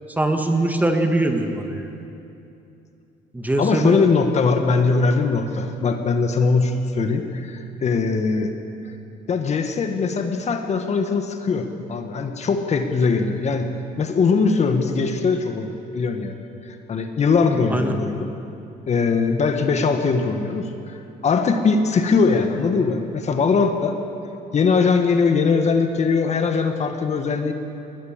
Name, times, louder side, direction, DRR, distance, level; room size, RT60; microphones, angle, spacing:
voice 1, 0.2-1.9 3.3-4.0 17.7-17.9, right 1 dB, 10° right, 4 dB, 1.8 m, -22 dB
voice 2, 3.6-8.5 9.3-13.7 14.0-18.3 18.9-24.0 24.5-27.5, left 4 dB, 40° left, 6 dB, 1.7 m, -21 dB
20.5 x 19.5 x 7.5 m, 2.7 s
cardioid pair, 110°, 17 cm